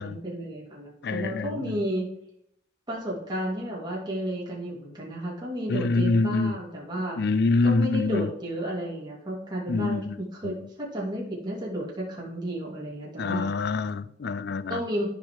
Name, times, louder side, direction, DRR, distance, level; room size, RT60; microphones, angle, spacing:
voice 1, 0.0-2.1 2.9-7.2 7.6-10.0 10.3-13.5 14.7-15.1, right 1 dB, 20° right, 2.3 m, -32 dB
voice 2, 1.0-1.8 5.7-6.6 7.2-8.3 9.7-10.2 10.4-10.5 13.2-14.8, left 3 dB, 55° left, 0.5 m, -25 dB
13.5 x 5.3 x 3.1 m
head